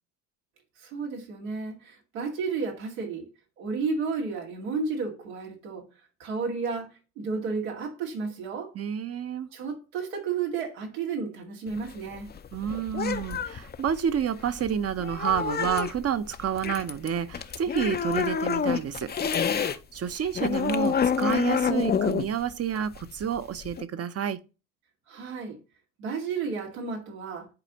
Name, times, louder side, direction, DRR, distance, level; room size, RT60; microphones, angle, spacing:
voice 1, 0.8-3.3 3.6-5.9 6.2-8.7 9.5-12.3 25.1-25.6 26.0-27.5, right 5 dB, 90° right, 2.2 m, -32 dB
voice 2, 8.7-9.5 12.5-19.1 19.6-24.4, right 8 dB, 35° right, 0.8 m, -29 dB
sound 1, 11.7-19.8 20.1-23.8, left 7 dB, 25° left, 0.6 m, -28 dB
10.5 x 4.1 x 2.9 m
supercardioid pair, 75°, 41 cm